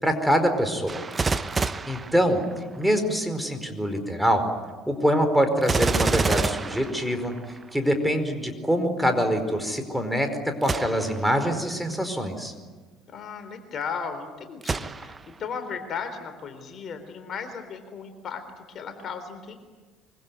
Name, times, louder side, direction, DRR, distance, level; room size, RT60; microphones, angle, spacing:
voice 1, 0.0-1.0 1.6-2.4 2.8-4.4 4.9-7.3 7.7-12.5, equal, ahead, 6 dB, 4.8 m, -24 dB
Gunshot gunfire, 0.9-2.9 5.6-7.7 10.6-11.3 11.9-12.0 14.6-15.4 15.9-16.0, right 4 dB, 25° right, 1.1 m, -28 dB
voice 2, 13.1-19.6, left 6 dB, 45° left, 8 dB, 3.8 m, -36 dB
25.0 x 24.5 x 9.4 m, 1.4 s
figure-of-eight pair, 60°, 0 cm